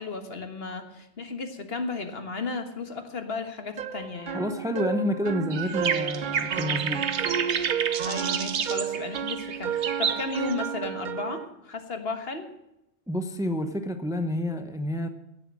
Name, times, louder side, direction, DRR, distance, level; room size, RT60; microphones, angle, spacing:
voice 1, 0.0-4.5 8.0-12.5, left 3 dB, 65° left, 7 dB, 1.7 m, -34 dB
sound 1, 3.8-11.5, right 8 dB, 55° right, 0.7 m, -32 dB
voice 2, 4.3-7.1 13.1-15.1, left 1 dB, 5° right, 8 dB, 0.8 m, -29 dB
sound 2, 5.5-10.5, right 7 dB, 90° right, 1.2 m, -30 dB
16.0 x 7.7 x 7.4 m, 0.85 s
omnidirectional pair, 1.1 m